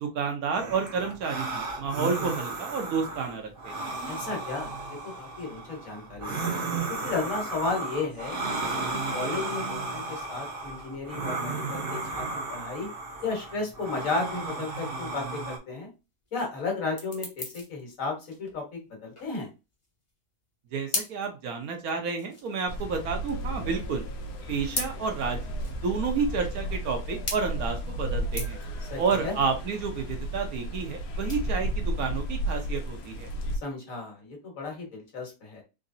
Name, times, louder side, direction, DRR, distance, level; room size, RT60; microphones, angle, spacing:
voice 1, 0.0-3.9 20.7-24.1 24.5-25.4 25.8-28.6 29.0-33.3, right 5 dB, 70° right, 4 dB, 1.2 m, -30 dB
sound 1, 0.5-15.6, right 3 dB, 45° right, 0.8 m, -34 dB
voice 2, 4.1-4.8 5.2-6.6 7.0-8.8 9.1-12.9 13.2-15.9 16.3-19.5 28.9-29.3 33.6-35.6, left 3 dB, 55° left, 1 dB, 1.6 m, -34 dB
sound 2, 13.8-33.5, left 2 dB, 25° left, 0.9 m, -41 dB
sound 3, 22.7-33.6, right 1 dB, 80° left, 1.3 m, -33 dB
3.9 x 3.1 x 2.6 m, 0.27 s
omnidirectional pair, 1.7 m